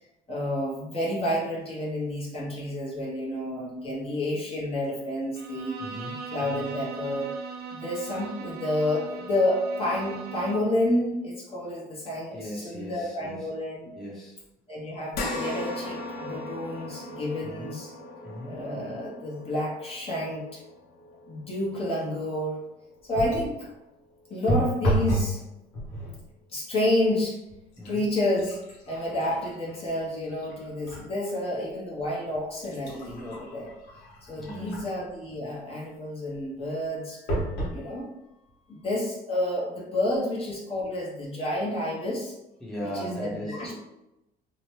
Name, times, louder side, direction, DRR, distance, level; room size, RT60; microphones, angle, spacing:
voice 1, 0.3-5.8 6.3-7.3 7.7-13.9 14.7-17.9 18.5-20.6 21.3-22.6 23.1-23.7 24.3-25.4 26.5-27.4 27.8-28.6 28.9-33.7 34.3-38.1 38.7-42.3 42.8-43.8, left 1 dB, 35° left, -4 dB, 0.9 m, -30 dB
Bowed string instrument, 5.3-10.8, right 6 dB, 70° right, 0.5 m, -39 dB
voice 2, 5.8-6.2 12.3-13.5 13.9-14.4 17.4-17.8 18.2-18.6 27.8-28.1 34.4-34.9 37.2-38.0 38.5-38.9 42.6-43.8, equal, ahead, -6 dB, 0.8 m, -38 dB
sound 1, 15.1-23.7 24.2-24.3 25.7-25.8, left 2 dB, 65° left, 0.7 m, -39 dB
sound 2, 23.1-23.6 24.5-25.4 25.7-26.2 27.0-27.1 27.5-31.1 31.6-31.7 32.3-35.1 37.3-37.8 38.5-38.6 38.8-38.9, right 1 dB, 80° left, 1.1 m, -31 dB
2.8 x 2.1 x 3.1 m, 0.94 s
cardioid pair, 110°, 17 cm